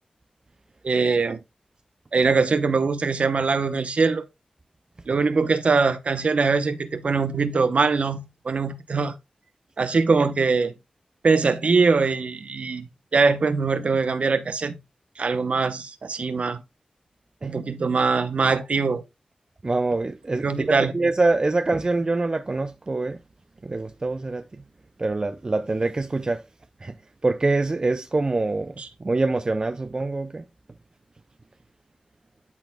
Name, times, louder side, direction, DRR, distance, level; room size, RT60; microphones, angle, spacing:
voice 1, 0.8-1.4 2.1-4.3 5.1-9.2 9.8-10.7 11.2-14.8 15.2-16.6 17.4-19.0 20.4-20.9 28.8-28.9, right 4 dB, 65° right, 0.8 m, -22 dB
voice 2, 19.6-23.2 23.6-24.6 25.0-26.4 26.8-26.9 27.2-28.7 29.0-30.4, right 2 dB, 35° right, 0.5 m, -25 dB
12.0 x 4.2 x 2.3 m
wide cardioid pair, 85°, 2 cm